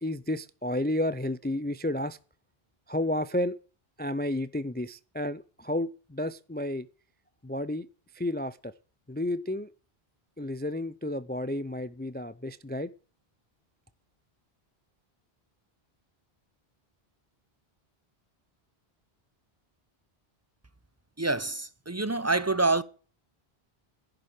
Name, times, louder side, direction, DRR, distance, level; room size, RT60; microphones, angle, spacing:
voice 1, 0.0-2.2 2.9-3.5 4.0-6.9 7.4-7.9 8.2-8.7 9.1-9.7 10.4-12.9, left 1 dB, 15° left, 0.3 m, -31 dB
voice 2, 21.2-22.8, right 3 dB, 15° right, 0.7 m, -26 dB
11.0 x 7.7 x 8.7 m
omnidirectional pair, 1.0 m